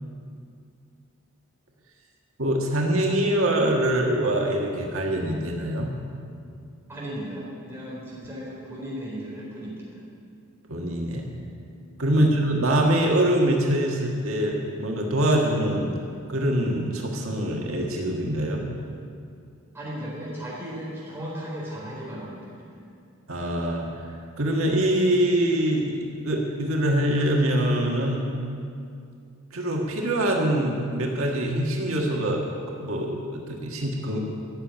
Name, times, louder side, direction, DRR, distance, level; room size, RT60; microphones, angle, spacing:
voice 1, 2.4-5.9 10.7-11.3 12.0-15.9 16.3-18.7 23.3-28.3 29.5-32.4 32.8-34.2, right 1 dB, 85° right, 0 dB, 1.6 m, -24 dB
voice 2, 6.9-10.0 12.1-12.3 19.7-22.8, equal, 10° right, -7 dB, 4.3 m, -36 dB
14.0 x 7.3 x 9.4 m, 2.4 s
head